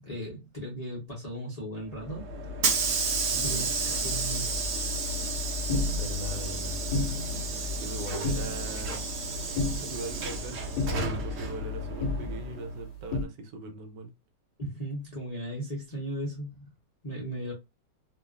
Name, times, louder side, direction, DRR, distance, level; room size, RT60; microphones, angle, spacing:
voice 1, 0.0-2.3 3.4-3.7 3.9-4.6 14.6-16.7 17.0-17.5, right 1 dB, 40° left, 0.5 m, -36 dB
Hiss / Sliding door, 1.9-12.8, right 2 dB, 60° right, 0.9 m, -31 dB
voice 2, 3.3-3.7 5.9-6.8 7.8-9.1 9.4-14.1, right 3 dB, 75° right, 1.3 m, -41 dB
sound 1, 4.6-13.3, left 1 dB, 75° left, 1.1 m, -35 dB
2.8 x 2.4 x 2.3 m
omnidirectional pair, 1.9 m